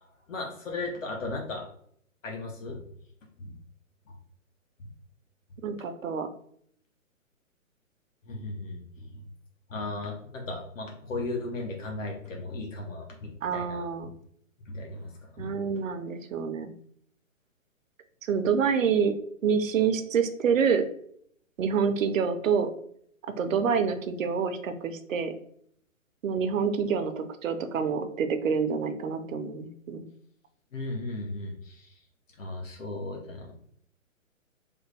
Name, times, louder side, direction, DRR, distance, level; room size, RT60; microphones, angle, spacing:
voice 1, 0.3-1.7 2.2-2.8 3.4-3.5 8.3-9.2 9.7-13.8 14.7-15.6 30.7-31.9 32.4-33.5, left 2 dB, 65° left, 0 dB, 0.9 m, -36 dB
voice 2, 5.6-6.3 13.4-14.1 15.4-16.7 18.2-19.1 19.4-20.8 21.6-22.7 23.4-25.3 26.2-30.0, right 6 dB, 70° right, 8 dB, 0.6 m, -27 dB
3.4 x 2.1 x 3.2 m, 0.65 s
hypercardioid pair, 135°, 41 cm